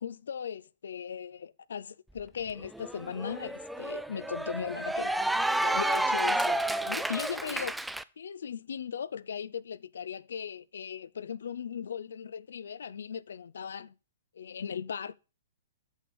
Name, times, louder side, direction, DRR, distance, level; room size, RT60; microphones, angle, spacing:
voice 1, 0.0-5.2 5.5-7.9 8.2-13.9 14.3-15.1, left 7 dB, 75° left, 0.5 m, -38 dB
Cheering / Applause, 2.2-2.3 2.6-8.0, right 1 dB, 5° right, 0.4 m, -30 dB
6.7 x 6.3 x 5.3 m
hypercardioid pair, 125°, 0 cm